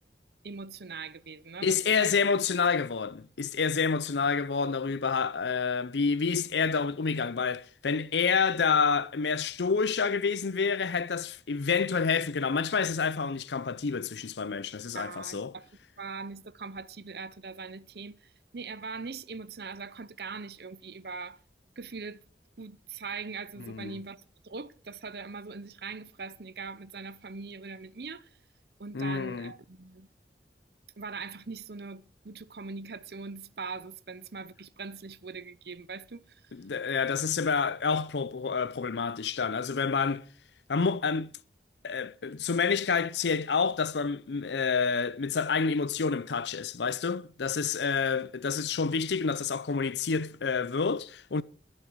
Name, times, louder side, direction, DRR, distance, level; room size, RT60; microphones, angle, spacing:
voice 1, 0.4-2.2 14.9-15.7 16.0-21.4 21.8-22.2 22.6-28.3 28.8-30.1 31.0-36.5, right 4 dB, 60° right, 0.7 m, -41 dB
voice 2, 1.6-15.5 23.6-24.0 28.9-29.5 36.5-40.2 40.7-41.3 41.8-51.4, left 5 dB, 80° left, 0.6 m, -28 dB
22.0 x 7.5 x 4.6 m
head